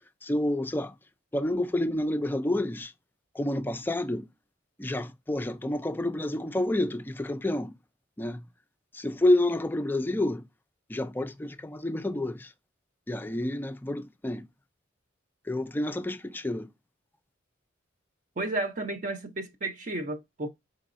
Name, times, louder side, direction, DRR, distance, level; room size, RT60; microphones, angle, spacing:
voice 1, 0.2-0.9 1.3-2.9 3.3-4.3 4.8-7.7 8.2-8.4 8.9-10.4 10.9-12.5 13.1-14.5 15.5-16.7, left 1 dB, 10° left, 0.4 m, -29 dB
voice 2, 18.4-20.5, right 2 dB, 40° right, 0.7 m, -32 dB
5.1 x 4.0 x 2.5 m
head